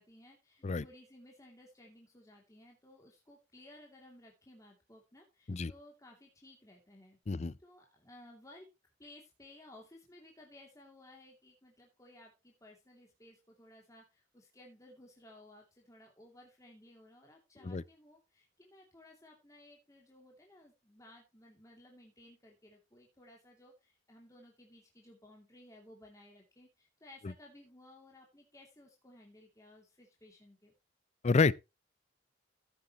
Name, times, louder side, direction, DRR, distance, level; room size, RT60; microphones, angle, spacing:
voice 1, 0.0-8.7 9.0-30.7, left 1 dB, 20° left, 2.7 m, -58 dB
voice 2, 0.6-0.8 5.5-5.7 7.3-7.5 17.6-17.8 31.2-31.5, left 4 dB, 35° left, 0.5 m, -28 dB
15.5 x 8.0 x 3.0 m
head